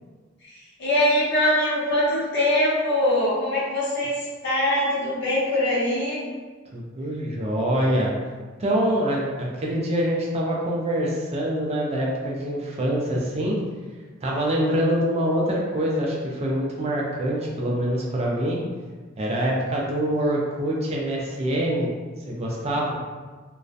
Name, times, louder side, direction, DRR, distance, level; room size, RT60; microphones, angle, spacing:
voice 1, 0.8-4.1 4.4-6.2, left 1 dB, 60° left, -7 dB, 0.8 m, -22 dB
voice 2, 6.7-8.1 8.6-13.6 14.2-18.6 19.2-21.9 22.3-22.9, equal, 30° right, -3 dB, 0.4 m, -25 dB
2.3 x 2.1 x 2.5 m, 1.4 s
head